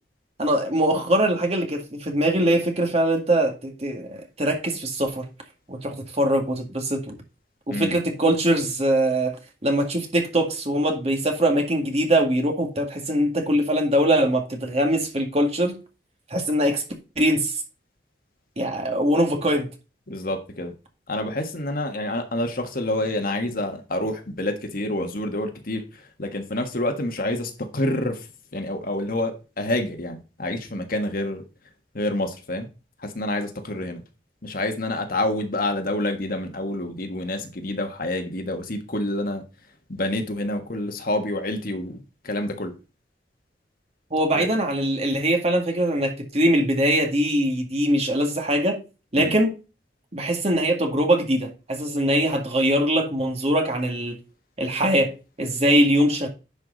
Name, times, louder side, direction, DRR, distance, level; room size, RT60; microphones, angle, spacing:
voice 1, 0.4-5.3 5.7-7.2 7.7-9.4 9.6-15.8 16.3-16.8 17.2-17.5 18.6-19.7 44.1-48.8 49.1-49.6 50.1-54.2 54.6-56.3, right 1 dB, 35° right, 2.0 m, -22 dB
voice 2, 20.1-20.7 21.1-28.3 28.5-31.4 31.9-32.7 33.0-34.0 34.4-39.4 39.9-42.7 44.3-44.5 49.2-49.3, left 1 dB, 55° left, 1.5 m, -28 dB
10.5 x 4.9 x 4.0 m
head